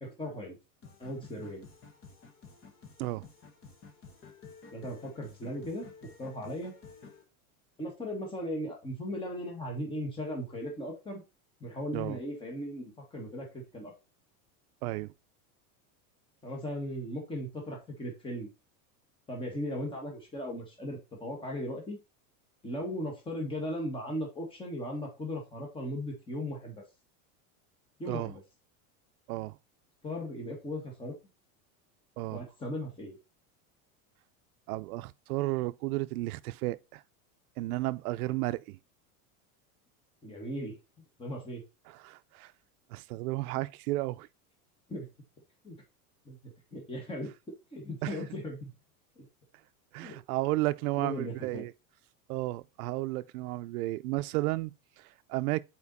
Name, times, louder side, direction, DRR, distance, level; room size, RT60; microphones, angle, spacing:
voice 1, 0.0-0.6 1.0-1.6 4.7-5.9 6.2-6.7 7.8-11.2 11.6-13.9 16.4-18.5 19.3-22.0 22.6-26.8 28.0-28.4 30.0-31.1 32.3-33.2 40.2-40.8 41.2-41.6 44.9-45.1 45.6-45.8 46.3-47.3 47.7-48.7 49.2-49.3 50.0-50.2 51.0-51.6, equal, 10° left, 1.9 m, -37 dB
sound 1, 0.8-7.2, left 5 dB, 30° left, 1.4 m, -52 dB
voice 2, 14.8-15.1 28.1-28.3 29.3-29.6 32.2-32.4 34.7-37.0 37.6-38.8 41.9-42.5 42.9-44.3 48.0-48.2 49.9-51.7 52.3-55.6, right 19 dB, 75° right, 0.6 m, -33 dB
7.2 x 4.5 x 4.0 m
supercardioid pair, 150°, 44 cm